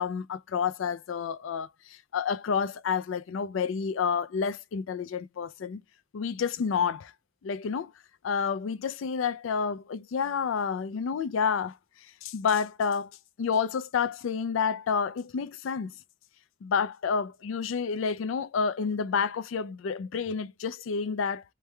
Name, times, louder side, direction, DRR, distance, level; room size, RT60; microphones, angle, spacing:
voice 1, 0.0-5.8 6.1-7.1 7.4-7.9 8.2-11.8 12.2-13.1 13.4-15.9 16.6-21.4, left 6 dB, 70° left, 0.4 m, -29 dB
3.2 x 2.2 x 3.2 m
head